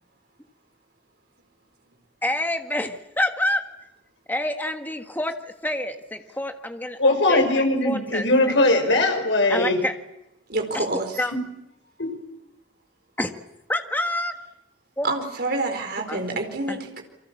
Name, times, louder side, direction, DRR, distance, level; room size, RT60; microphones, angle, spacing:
voice 1, 2.2-3.7 4.3-5.3 5.6-7.0 7.3-8.3 9.5-9.9 10.7-10.9 11.2-11.3 13.2-13.3 13.7-14.3 15.0-15.1 16.1-16.2 16.7-16.8, left 1 dB, 10° left, 6 dB, 1.7 m, -27 dB
voice 2, 7.0-9.8 11.3-11.5 12.0-12.2, left 2 dB, 80° left, 5 dB, 5.8 m, -20 dB
voice 3, 10.5-11.2 15.0-17.0, right 2 dB, 55° right, 5 dB, 4.3 m, -27 dB
29.5 x 24.0 x 7.3 m, 0.85 s
head